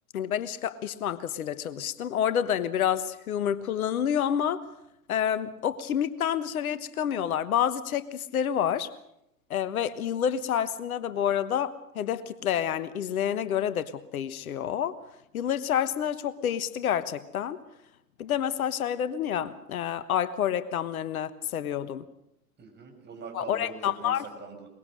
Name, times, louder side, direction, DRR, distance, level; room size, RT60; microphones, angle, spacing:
voice 1, 0.1-4.7 5.1-8.9 9.5-15.0 15.3-17.6 18.2-22.0 23.3-24.3, left 9 dB, 65° left, 14 dB, 1.3 m, -28 dB
voice 2, 22.6-24.7, right 3 dB, 20° right, 2 dB, 6.7 m, -43 dB
23.0 x 22.0 x 6.4 m, 0.80 s
hypercardioid pair, 105°, 46 cm